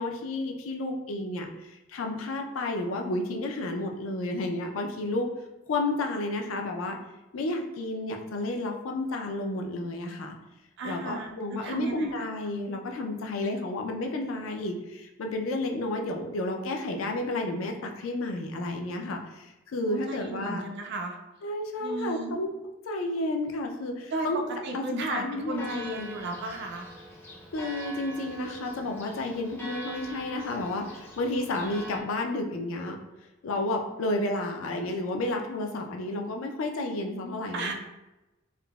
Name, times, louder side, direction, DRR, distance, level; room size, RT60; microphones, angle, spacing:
voice 1, 0.0-5.3 5.7-7.0 7.3-10.4 10.8-20.6 21.4-22.5 22.9-26.1 27.5-33.0 33.4-37.7, left 2 dB, 85° left, 3 dB, 0.4 m, -31 dB
voice 2, 10.8-12.3 19.9-21.2 21.8-22.4 24.1-26.9 37.5-37.7, right 2 dB, 60° right, 2 dB, 0.4 m, -34 dB
Church bell, 25.5-32.0, equal, 10° left, 0.4 m, -43 dB
3.6 x 2.0 x 2.2 m, 1.0 s
head